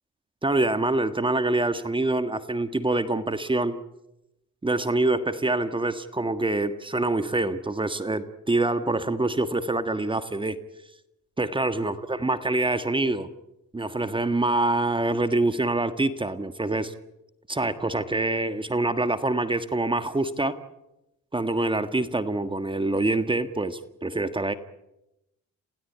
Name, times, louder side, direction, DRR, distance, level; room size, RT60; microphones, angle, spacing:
voice 1, 0.4-3.8 4.6-10.6 11.4-13.3 13.7-16.9 17.5-20.6 21.3-24.5, right 2 dB, 15° right, 11 dB, 1.6 m, -25 dB
28.5 x 17.0 x 9.6 m, 0.91 s
cardioid pair, 90°, 30 cm